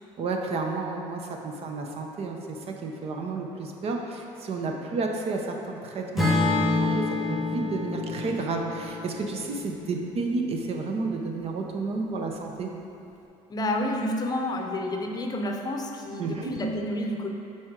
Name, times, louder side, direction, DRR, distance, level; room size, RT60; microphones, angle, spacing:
voice 1, 0.2-12.7 16.2-16.5, right 3 dB, 55° right, 2 dB, 0.8 m, -31 dB
Acoustic guitar / Strum, 6.2-10.4, left 2 dB, ahead, 1.3 m, -27 dB
voice 2, 13.5-17.3, left 1 dB, 30° left, 2 dB, 0.7 m, -29 dB
7.7 x 4.4 x 3.7 m, 2.7 s
cardioid pair, 95°, 13 cm